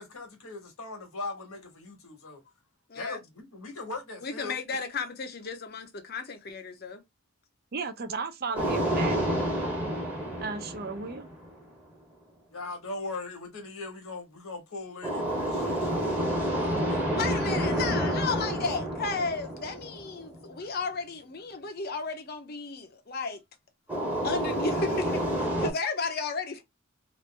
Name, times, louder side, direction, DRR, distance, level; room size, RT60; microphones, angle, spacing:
voice 1, 0.0-2.4 2.9-4.6 12.5-16.9, left 3 dB, 75° left, 1.2 m, -40 dB
voice 2, 2.9-3.2 4.2-7.0 16.9-23.4 24.2-26.6, left 4 dB, 45° left, 0.7 m, -34 dB
voice 3, 7.7-9.3 10.4-11.3, right 4 dB, 45° right, 0.4 m, -35 dB
sound 1, 8.6-11.6 15.0-20.4 23.9-25.7, equal, 10° right, 0.9 m, -29 dB
3.1 x 2.5 x 3.2 m
head